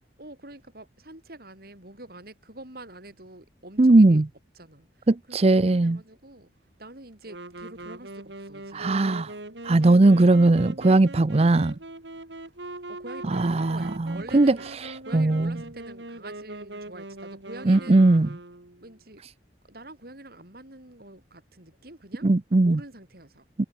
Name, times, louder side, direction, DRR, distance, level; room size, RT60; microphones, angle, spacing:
voice 1, 0.2-4.2 4.5-6.5 6.8-9.0 12.9-14.7 15.0-18.0 18.8-19.2 19.6-22.3 22.6-23.4, right 1 dB, 60° right, 6.3 m, -45 dB
voice 2, 3.8-4.3 5.1-6.0 8.7-9.3 9.6-11.7 13.3-14.6 15.1-15.6 17.7-18.3 22.2-22.8 23.6-23.7, right 2 dB, 35° right, 0.6 m, -19 dB
Wind instrument woodwind instrument, 7.2-19.0, right 2 dB, 90° right, 4.2 m, -41 dB
head